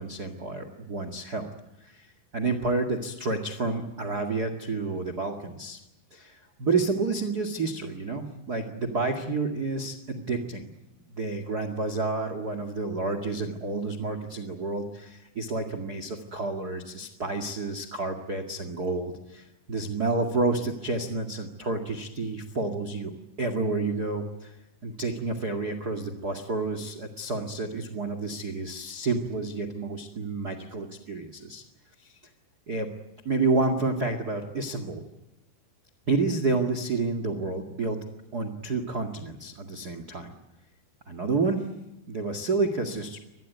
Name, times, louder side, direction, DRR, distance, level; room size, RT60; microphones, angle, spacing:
voice 1, 0.0-1.5 1.8-5.8 6.1-10.7 11.2-23.1 23.4-24.6 24.8-31.6 32.0-32.2 32.7-32.9 33.2-35.0 36.1-38.0 38.3-40.3 41.1-41.7 42.1-43.2, right 3 dB, 50° right, 9 dB, 1.1 m, -30 dB
25.0 x 20.5 x 9.4 m, 0.95 s
omnidirectional pair, 5.4 m